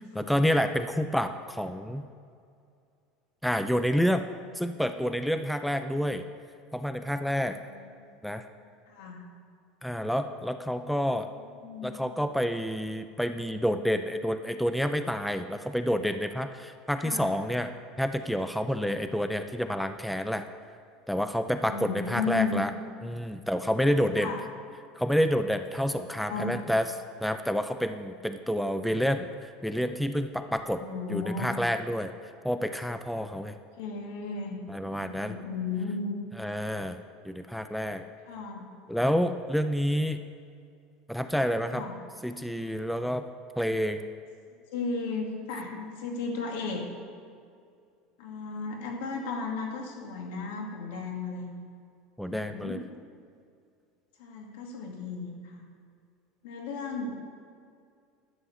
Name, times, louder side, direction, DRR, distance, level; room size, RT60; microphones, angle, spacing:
voice 1, 0.2-2.0 3.4-4.3 4.5-6.3 6.7-7.6 8.2-8.4 9.8-11.3 11.8-17.7 18.0-20.5 21.1-22.7 23.0-24.3 25.0-26.9 27.2-30.8 31.1-32.1 32.4-33.5 34.7-35.4 36.4-37.0 37.2-38.0 38.9-40.2 41.1-41.9 42.2-43.3 43.6-44.0 52.2-52.8, equal, ahead, 9 dB, 0.3 m, -28 dB
voice 2, 7.5-8.1 8.9-9.3 11.4-12.0 17.0-17.3 21.7-22.6 24.2-24.4 26.1-26.6 30.8-31.6 33.8-34.6 34.9-36.2 38.3-38.6 41.7-41.9 44.7-46.8 48.2-51.5 52.3-52.9 54.2-55.7 56.4-57.3, left 4 dB, 80° left, 1 dB, 2.3 m, -35 dB
11.5 x 8.0 x 7.0 m, 2.3 s
cardioid pair, 170°, 0 cm